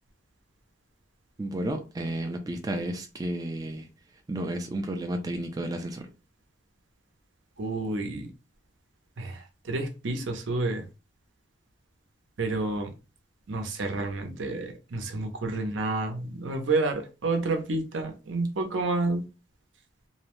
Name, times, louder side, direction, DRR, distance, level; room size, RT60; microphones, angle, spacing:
voice 1, 1.4-3.9 4.3-6.0, right 1 dB, 20° right, 0.3 m, -32 dB
voice 2, 7.6-8.3 9.2-10.8 12.4-12.9 13.5-19.2, right 2 dB, 75° right, 0.6 m, -29 dB
2.6 x 2.1 x 2.9 m
head